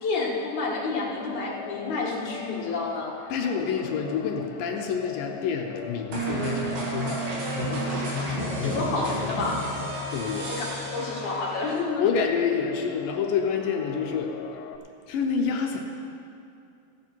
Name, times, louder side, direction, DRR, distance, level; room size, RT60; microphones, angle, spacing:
voice 1, 0.0-3.1 8.6-9.1 9.4-9.6 10.5-10.7 10.9-12.1, left 3 dB, 60° left, -4 dB, 2.8 m, -29 dB
sound 1, 0.9-14.8, left 10 dB, 90° left, 2.6 m, -42 dB
voice 2, 3.3-9.4 10.1-10.6 12.0-14.3 15.1-15.8, left 6 dB, 75° left, 2 dB, 2.3 m, -28 dB
sound 2, 6.1-11.8, right 2 dB, 75° right, 3.8 m, -31 dB
15.5 x 10.0 x 4.6 m, 2.6 s
omnidirectional pair, 4.3 m